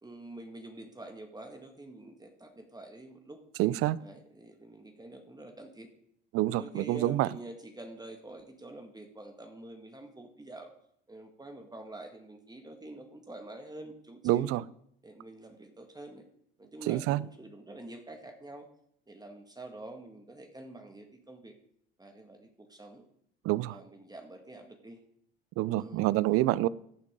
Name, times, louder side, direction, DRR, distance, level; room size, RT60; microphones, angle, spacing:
voice 1, 0.0-3.4 4.0-5.9 6.5-10.7 11.1-14.5 15.0-16.3 16.6-18.7 19.1-21.6 22.0-23.1 23.7-25.0 25.8-26.0, right 2 dB, 15° right, 4 dB, 1.9 m, -47 dB
voice 2, 3.6-4.0 6.3-7.3 14.2-14.6 16.9-17.2 23.4-23.8 25.6-26.7, right 16 dB, 50° right, 21 dB, 0.6 m, -27 dB
15.0 x 8.3 x 3.8 m, 0.70 s
hypercardioid pair, 65°, 29 cm